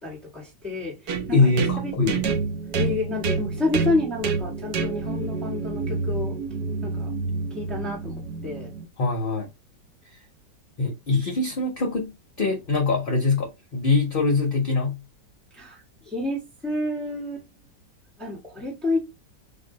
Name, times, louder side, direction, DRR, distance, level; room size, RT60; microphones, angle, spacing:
voice 1, 0.0-1.0 1.3-1.5 1.8-1.9 2.8-6.4 6.8-7.1 7.5-8.7 15.5-17.5 18.2-19.1, left 2 dB, ahead, 1.4 m, -29 dB
sound 1, 1.1-8.9, right 4 dB, 70° right, 1.4 m, -28 dB
voice 2, 1.3-2.2 9.0-9.5 10.8-15.0, left 3 dB, 45° left, 0.7 m, -23 dB
3.8 x 3.1 x 3.8 m
omnidirectional pair, 1.9 m